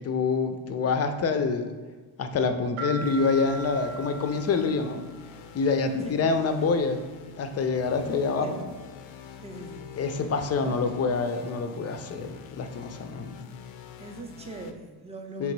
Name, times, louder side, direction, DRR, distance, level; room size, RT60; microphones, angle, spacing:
voice 1, 0.0-1.7 2.2-5.1 5.5-7.0 7.4-8.7 10.0-13.3 15.4-15.5, left 4 dB, 35° left, 7 dB, 0.5 m, -26 dB
sound 1, 2.8-5.4, right 2 dB, 85° right, 0.8 m, -39 dB
sound 2, 3.0-14.7, left 7 dB, 80° left, 0.6 m, -46 dB
voice 2, 6.0-6.7 8.4-8.6 9.4-10.1 10.6-10.8 14.0-15.5, right 2 dB, 15° right, 3 dB, 0.5 m, -42 dB
3.5 x 2.8 x 4.5 m, 1.4 s
supercardioid pair, 75°, 48 cm